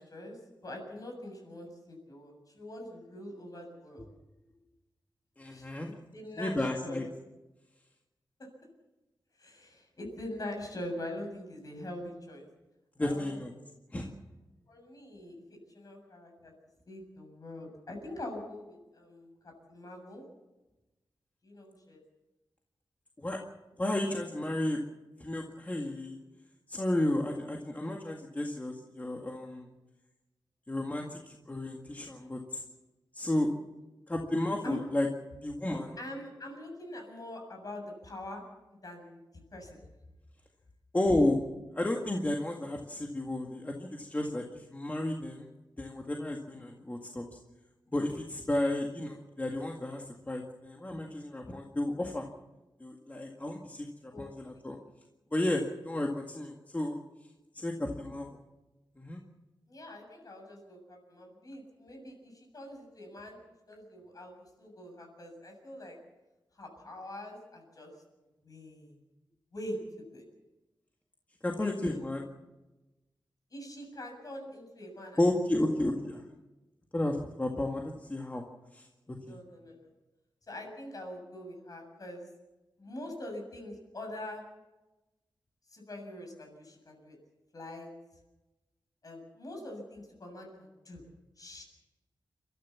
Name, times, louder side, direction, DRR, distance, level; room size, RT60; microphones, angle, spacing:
voice 1, 0.0-4.0 5.5-7.0 8.4-8.5 9.4-12.5 13.0-13.4 14.7-16.5 16.9-20.2 21.4-22.0 34.6-34.8 36.0-38.4 38.8-39.2 39.5-39.8 54.1-54.3 59.7-63.4 63.7-66.0 66.6-67.9 68.4-69.0 69.5-70.2 71.5-72.0 73.5-75.2 75.6-75.7 79.2-79.9 80.5-82.3 82.8-84.4 85.7-87.2 87.5-87.9 89.0-91.0 91.4-91.6, left 1 dB, 50° left, 2 dB, 7.3 m, -44 dB
voice 2, 5.4-5.9 6.4-7.0 13.0-13.5 13.9-14.1 23.2-23.4 23.8-24.8 25.2-26.2 26.7-29.7 30.7-32.6 33.1-33.5 34.1-35.1 35.4-36.0 40.9-41.4 41.7-45.5 45.8-47.4 47.9-52.3 52.8-54.8 55.3-57.0 57.5-58.3 59.0-59.2 71.4-72.2 75.2-76.2 76.9-78.4 78.7-79.4, left 1 dB, 20° left, 1 dB, 1.9 m, -32 dB
30.0 x 13.5 x 7.2 m, 1.1 s
wide cardioid pair, 125°, 8 cm